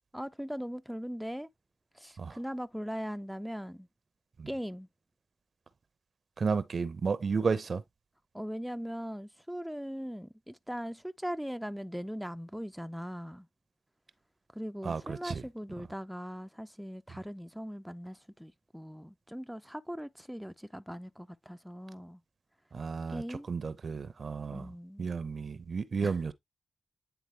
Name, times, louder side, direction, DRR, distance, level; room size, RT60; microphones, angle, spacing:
voice 1, 0.1-1.5 1.9-3.9 4.5-4.9 8.3-13.5 14.5-22.2 23.1-23.5 24.5-25.1 26.0-26.1, equal, ahead, 0.6 m, -40 dB
voice 2, 6.4-7.8 14.8-15.4 22.7-24.7 25.0-26.3, right 5 dB, 60° right, 0.8 m, -32 dB
9.1 x 3.6 x 3.3 m
cardioid pair, 55°, 0 cm